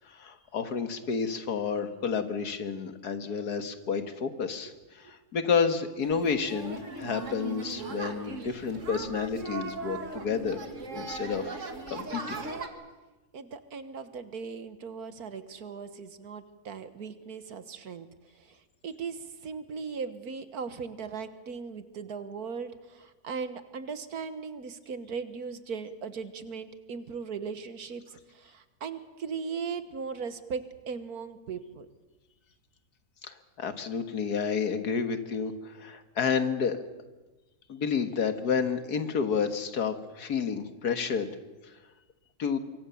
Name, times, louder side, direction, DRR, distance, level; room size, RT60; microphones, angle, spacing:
voice 1, 0.1-10.6 10.9-11.6 11.9-12.4 33.2-36.8 37.7-41.3 42.4-42.6, left 6 dB, 80° left, 9 dB, 2.1 m, -30 dB
sound 1, 6.0-12.7, right 3 dB, 50° right, 2.3 m, -38 dB
voice 2, 13.3-18.1 18.4-31.9, right 5 dB, 70° right, 11 dB, 1.8 m, -38 dB
25.5 x 23.5 x 7.1 m, 1.2 s
omnidirectional pair, 1.7 m